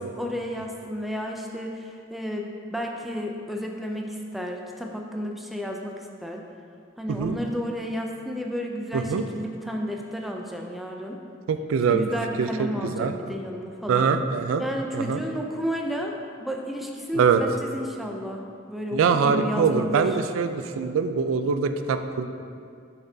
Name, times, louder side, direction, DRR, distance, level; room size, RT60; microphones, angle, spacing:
voice 1, 0.2-6.4 7.0-11.2 11.9-14.1 14.6-18.4 18.7-20.2, equal, ahead, 1 dB, 0.4 m, -32 dB
voice 2, 8.9-9.2 11.5-12.1 12.4-13.1 13.9-14.6 14.9-15.2 17.1-17.4 18.9-22.3, right 5 dB, 80° right, 9 dB, 0.3 m, -23 dB
7.0 x 5.9 x 2.7 m, 2.3 s
head